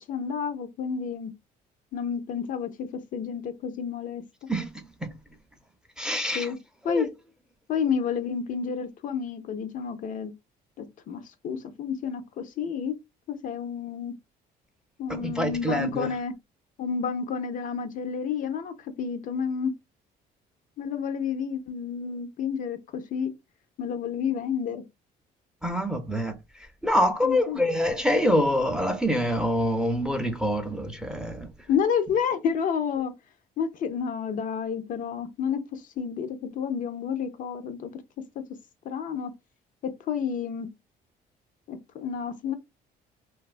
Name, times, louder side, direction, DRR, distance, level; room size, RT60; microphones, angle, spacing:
voice 1, 0.1-1.3 1.9-4.2 6.3-6.6 6.8-7.1 7.7-10.3 10.8-13.0 13.3-14.1 15.0-16.4 16.8-19.7 20.8-23.3 23.8-24.8 27.2-27.6 31.7-33.1 33.6-38.4 38.9-39.3 39.8-40.7 41.7-42.6, left 7 dB, 50° left, 0.4 m, -30 dB
voice 2, 6.0-6.5 6.9-7.1 15.1-16.1 25.6-26.3 26.8-31.5, equal, 5° right, 0.5 m, -25 dB
2.6 x 2.3 x 2.4 m
cardioid pair, 110°, 17 cm